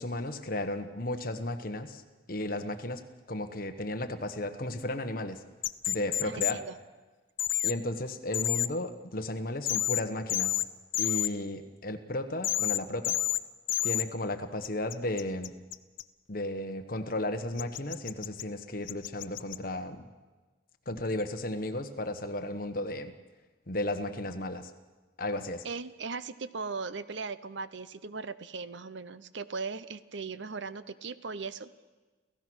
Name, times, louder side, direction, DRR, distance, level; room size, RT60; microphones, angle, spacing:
voice 1, 0.0-2.0 2.3-3.0 3.3-5.4 5.9-6.6 7.6-10.6 11.0-13.2 13.8-15.5 16.3-20.1 20.9-23.1 23.7-24.7 25.2-25.7, left 1 dB, 50° left, 8 dB, 1.3 m, -34 dB
sound 1, 5.6-6.5 7.4-7.7 8.3-8.7 9.7-10.0 10.3-10.6 10.9-11.3 12.4-12.8 13.0-13.4 13.7-14.0 14.6-16.0 17.6-18.4 18.9-19.6, left 13 dB, 85° left, 0.7 m, -29 dB
voice 2, 6.2-6.8 25.6-31.7, right 4 dB, 75° right, 15 dB, 0.8 m, -38 dB
28.5 x 15.5 x 6.3 m, 1.3 s
head